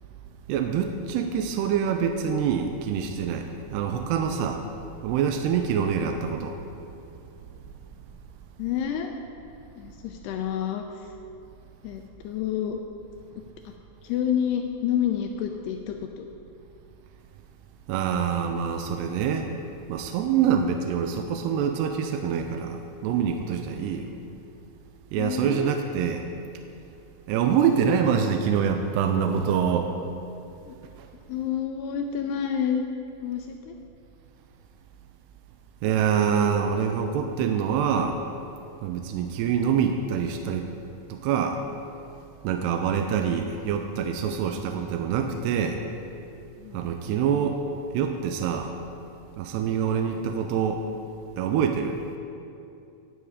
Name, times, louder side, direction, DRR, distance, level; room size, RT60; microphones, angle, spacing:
voice 1, 0.5-4.6 5.0-6.6 17.9-19.5 19.9-24.1 25.1-26.3 27.3-29.9 31.0-31.1 35.8-38.2 38.8-40.7 41.1-41.6 42.4-45.8 46.7-47.6 47.9-48.7 49.4-50.8 51.4-52.2, right 7 dB, 80° right, 5 dB, 2.7 m, -25 dB
voice 2, 8.6-9.1 9.8-11.1 11.8-12.8 13.4-13.5 14.0-16.2 25.2-25.8 30.6-30.7 31.3-32.8 33.2-33.8 46.6-46.9, left 9 dB, 80° left, 4 dB, 2.5 m, -29 dB
16.5 x 9.9 x 4.9 m, 2.7 s
omnidirectional pair, 5.1 m